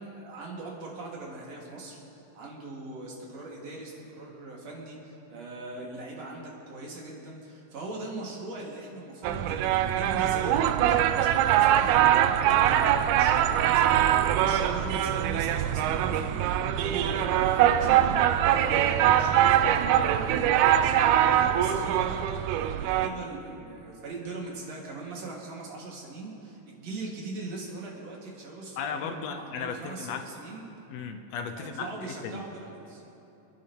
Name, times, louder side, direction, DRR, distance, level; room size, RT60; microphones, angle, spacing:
voice 1, 0.0-2.0 2.3-18.2 18.4-22.2 22.8-30.6 31.6-33.0, right 2 dB, 60° right, -3 dB, 3.2 m, -40 dB
sound 1, 9.2-23.1, right 11 dB, 85° right, 1.9 m, -23 dB
voice 2, 28.8-30.2 30.9-31.9 32.2-32.4, left 6 dB, 70° left, 6 dB, 1.9 m, -35 dB
29.0 x 10.0 x 3.0 m, 2.9 s
omnidirectional pair, 3.4 m